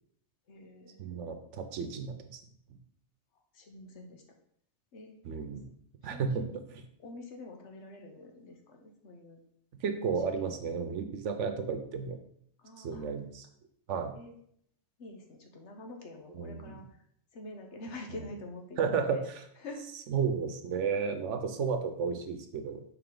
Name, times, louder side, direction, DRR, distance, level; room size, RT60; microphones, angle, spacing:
voice 1, 0.5-1.0 3.5-4.2 4.9-5.2 6.1-6.5 7.0-9.4 10.5-10.6 12.6-13.2 14.1-14.4 15.0-16.8 17.3-19.2 19.6-19.9, left 2 dB, 75° left, 3 dB, 1.3 m, -46 dB
voice 2, 1.0-2.4 5.2-5.7 6.0-6.8 9.8-12.2 12.8-13.5 13.9-14.1 16.3-16.8 18.1-18.2 18.8-19.4 20.1-22.8, right 6 dB, 85° right, 7 dB, 1.1 m, -33 dB
6.9 x 4.0 x 3.8 m, 0.67 s
omnidirectional pair, 1.2 m